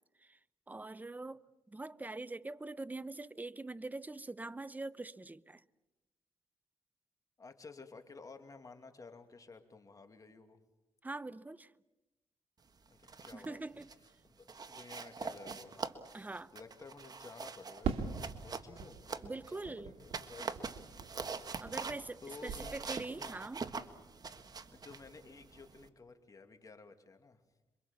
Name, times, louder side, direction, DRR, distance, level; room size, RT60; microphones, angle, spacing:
voice 1, 0.7-1.4 1.7-5.6 11.0-11.7 13.3-13.9 16.1-16.5 19.2-19.9 21.6-23.6, right 2 dB, 15° right, 0.8 m, -43 dB
voice 2, 7.4-10.6 12.9-13.8 14.2-15.9 16.5-20.9 22.2-22.7 23.2-23.4 24.7-27.4, left 4 dB, 35° left, 2.6 m, -54 dB
sound 1, 12.9-13.5 13.8-14.1 14.5-19.6 20.0-25.9, right 5 dB, 40° right, 1.6 m, -44 dB
Fireworks, 17.8-22.2 22.5-23.3, right 6 dB, 80° right, 2.3 m, -42 dB
27.5 x 23.5 x 7.2 m
cardioid pair, 90°, 10 cm